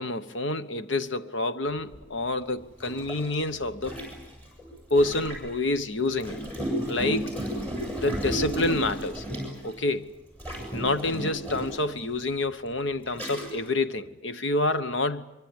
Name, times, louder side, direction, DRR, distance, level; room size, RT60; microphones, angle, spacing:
voice 1, 0.0-4.0 4.9-6.4 6.9-7.3 8.0-9.2 9.6-10.1 10.7-15.2, left 2 dB, 70° left, 1.1 m, -28 dB
Gurgling, 1.9-2.0 2.8-5.5 6.2-9.8 10.4-11.9 12.6-12.7 13.1-13.7, right 1 dB, 10° left, 7.8 m, -33 dB
24.5 x 24.0 x 9.0 m
head